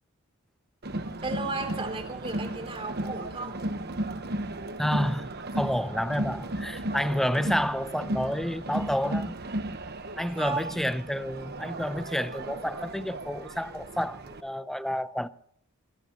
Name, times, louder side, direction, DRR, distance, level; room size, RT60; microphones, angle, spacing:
Crowd, 0.8-14.4, right 1 dB, 50° right, 1.2 m, -35 dB
voice 1, 1.2-3.6 10.4-10.7, right 3 dB, 25° right, 3.1 m, -34 dB
voice 2, 4.8-5.3 5.5-9.3 10.2-15.3, equal, ahead, 0.7 m, -29 dB
22.5 x 21.5 x 3.0 m
head